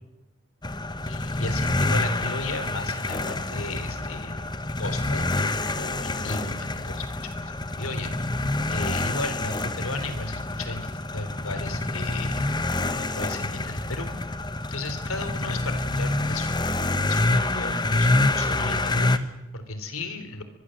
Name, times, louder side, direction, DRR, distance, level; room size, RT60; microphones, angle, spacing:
sound 1, 0.6-19.2, left 2 dB, 20° left, 1.0 m, -27 dB
voice 1, 1.1-4.5 4.8-7.5 7.8-8.4 8.7-12.4 12.9-14.1 14.7-20.4, left 2 dB, 85° left, 10 dB, 3.6 m, -35 dB
24.0 x 21.5 x 7.8 m, 0.99 s
head